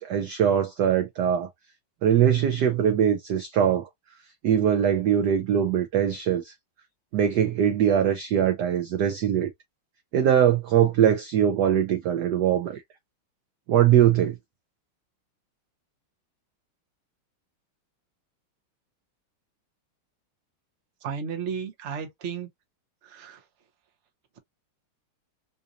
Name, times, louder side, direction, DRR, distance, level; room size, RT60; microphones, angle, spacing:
voice 1, 0.0-1.5 2.0-3.9 4.4-6.5 7.1-9.5 10.1-12.8 13.7-14.4, right 9 dB, 70° right, 1.0 m, -22 dB
voice 2, 21.0-22.5 23.0-23.4, right 6 dB, 45° right, 0.9 m, -33 dB
3.9 x 2.6 x 2.8 m
omnidirectional pair, 2.4 m